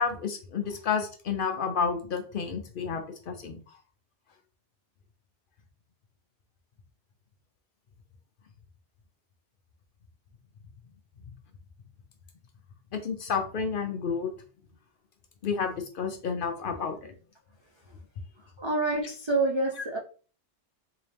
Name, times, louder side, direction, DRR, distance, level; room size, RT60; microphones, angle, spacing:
voice 1, 0.0-3.8 11.3-11.4 12.9-14.3 15.4-17.1, left 6 dB, 55° left, 6 dB, 0.7 m, -30 dB
voice 2, 18.4-20.0, right 2 dB, 45° right, 0 dB, 0.3 m, -28 dB
3.8 x 2.7 x 3.4 m, 0.39 s
omnidirectional pair, 1.2 m